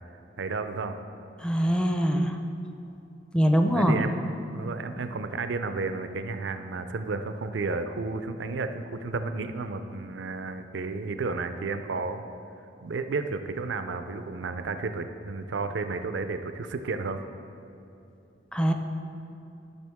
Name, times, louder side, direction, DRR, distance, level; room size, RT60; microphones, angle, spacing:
voice 1, 0.4-1.0 3.7-4.1 4.5-12.2 12.8-17.2, right 3 dB, 70° right, 8 dB, 0.5 m, -32 dB
voice 2, 1.4-2.4 3.3-4.0 18.5-18.7, equal, 5° left, 4 dB, 0.5 m, -23 dB
12.5 x 5.9 x 3.5 m, 2.8 s
head